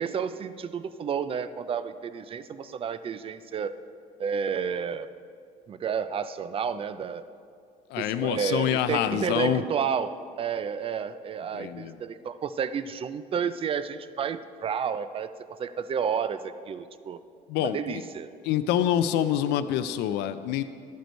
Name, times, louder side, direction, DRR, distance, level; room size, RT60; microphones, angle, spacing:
voice 1, 0.0-3.8 4.2-5.1 5.7-7.3 8.0-17.2 17.6-18.3, right 7 dB, 35° right, 13 dB, 0.4 m, -31 dB
voice 2, 7.9-9.6 11.5-12.0 17.5-18.0 18.4-20.6, left 10 dB, 85° left, 12 dB, 0.4 m, -26 dB
12.0 x 5.2 x 4.4 m, 2.3 s
cardioid pair, 110°, 17 cm